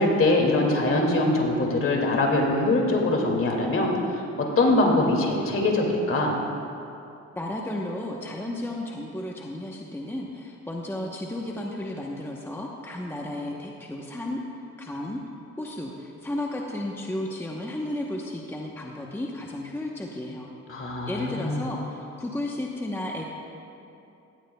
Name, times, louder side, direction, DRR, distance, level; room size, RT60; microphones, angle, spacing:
voice 1, 0.0-4.2 4.6-6.4 20.7-21.6, left 2 dB, 45° left, 0 dB, 2.3 m, -23 dB
voice 2, 7.3-14.4 14.8-15.2 15.6-20.5 21.1-23.3, left 1 dB, 10° left, -1 dB, 0.9 m, -33 dB
16.5 x 14.5 x 2.3 m, 2.8 s
cardioid pair, 90°, 30 cm